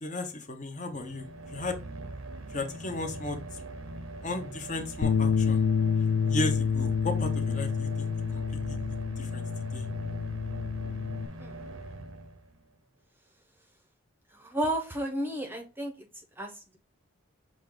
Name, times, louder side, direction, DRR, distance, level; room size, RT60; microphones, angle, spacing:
voice 1, 0.0-1.8 2.5-3.6 4.2-5.6 6.3-8.1 8.3-8.8 9.2-9.4 9.7-9.9, left 2 dB, 35° left, 5 dB, 0.7 m, -35 dB
sound 1, 0.9-12.7, right 2 dB, 80° right, 0.8 m, -42 dB
Bass guitar, 5.0-11.3, left 6 dB, 75° left, 0.3 m, -28 dB
voice 2, 14.4-15.9 16.4-16.5, right 1 dB, 10° right, 4 dB, 0.7 m, -31 dB
6.1 x 2.4 x 3.6 m, 0.32 s
head